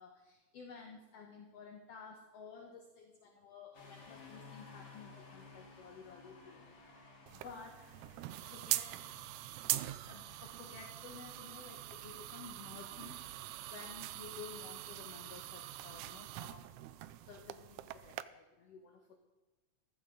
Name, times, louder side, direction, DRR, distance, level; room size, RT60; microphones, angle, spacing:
voice 1, 0.0-8.0 8.2-9.0 9.4-9.5 10.1-13.4 13.7-16.7 17.0-19.2, left 5 dB, 65° left, 3 dB, 2.0 m, -53 dB
sound 1, 3.7-15.5, left 4 dB, 35° left, 1.2 m, -59 dB
sound 2, 7.3-18.2, right 15 dB, 80° right, 2.0 m, -43 dB
15.0 x 15.0 x 4.0 m, 1.2 s
omnidirectional pair, 3.4 m